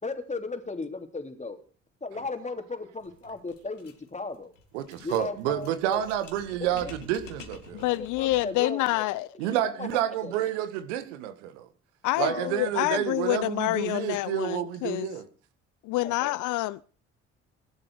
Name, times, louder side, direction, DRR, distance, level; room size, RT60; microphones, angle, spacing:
voice 1, 0.0-1.6 2.0-4.5 5.0-6.0 6.6-6.9 7.9-9.0 9.8-9.9 10.2-10.3 12.2-12.5 16.0-16.3, left 3 dB, 20° left, 3.4 m, -36 dB
sound 1, 3.0-8.7, left 6 dB, 80° left, 2.5 m, -49 dB
voice 2, 4.7-7.8 9.4-11.7 12.2-15.2, right 11 dB, 70° right, 1.8 m, -29 dB
voice 3, 7.8-9.3 12.0-15.1 15.8-16.8, left 18 dB, 55° left, 0.7 m, -27 dB
20.0 x 11.5 x 4.9 m
figure-of-eight pair, 50°, 37 cm